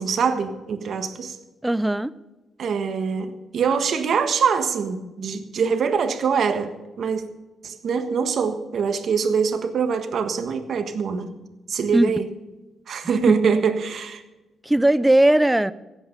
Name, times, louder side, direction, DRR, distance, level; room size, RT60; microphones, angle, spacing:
voice 1, 0.0-1.4 2.6-7.2 7.6-11.3 11.7-12.2 12.9-14.2, right 6 dB, 50° right, 7 dB, 1.5 m, -24 dB
voice 2, 1.6-2.1 11.9-12.1 13.3-13.4 14.6-15.7, right 1 dB, 5° right, 16 dB, 0.5 m, -18 dB
16.5 x 9.0 x 6.6 m, 1.1 s
cardioid pair, 145°, 0 cm